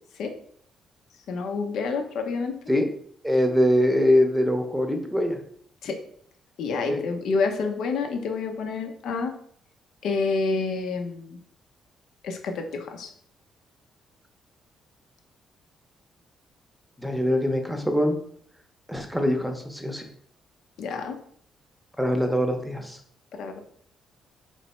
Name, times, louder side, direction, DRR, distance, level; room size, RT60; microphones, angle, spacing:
voice 1, 1.3-2.5 5.8-6.0 6.6-9.3 10.0-11.4 12.2-13.1 20.8-21.2 23.3-23.6, left 4 dB, 75° left, 5 dB, 0.7 m, -28 dB
voice 2, 3.2-5.4 6.9-7.0 17.0-18.2 18.9-20.0 22.0-23.0, left 1 dB, ahead, 4 dB, 0.8 m, -23 dB
3.3 x 3.1 x 4.3 m, 0.62 s
cardioid pair, 90°, 0 cm